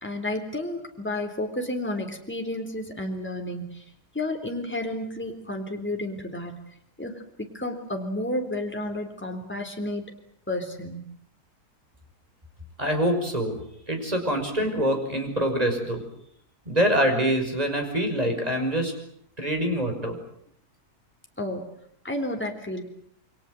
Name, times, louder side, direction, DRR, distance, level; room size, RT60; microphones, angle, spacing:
voice 1, 0.0-3.8 4.1-6.5 7.0-10.0 10.5-11.0 21.4-21.7 22.0-22.8, left 1 dB, 5° left, 3 dB, 3.7 m, -31 dB
voice 2, 12.8-13.6 13.9-16.0 16.7-18.9 19.4-20.2, equal, 25° right, 4 dB, 5.9 m, -25 dB
28.5 x 23.5 x 7.9 m, 0.68 s
omnidirectional pair, 1.7 m